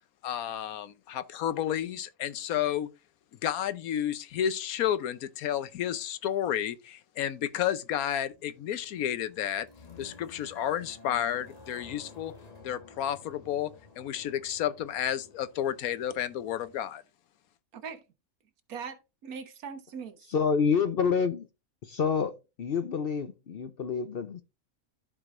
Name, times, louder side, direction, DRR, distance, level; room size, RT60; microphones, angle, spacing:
voice 1, 0.2-2.9 3.4-9.7 10.0-12.3 12.6-13.7 14.0-17.0, left 10 dB, 80° left, 1.2 m, -31 dB
sound 1, 8.3-16.8, left 4 dB, 30° left, 1.2 m, -53 dB
voice 2, 18.7-20.4, right 6 dB, 85° right, 1.5 m, -41 dB
voice 3, 20.3-21.5 21.8-22.3 22.6-24.4, left 6 dB, 55° left, 0.6 m, -27 dB
13.5 x 4.9 x 2.5 m
omnidirectional pair, 1.5 m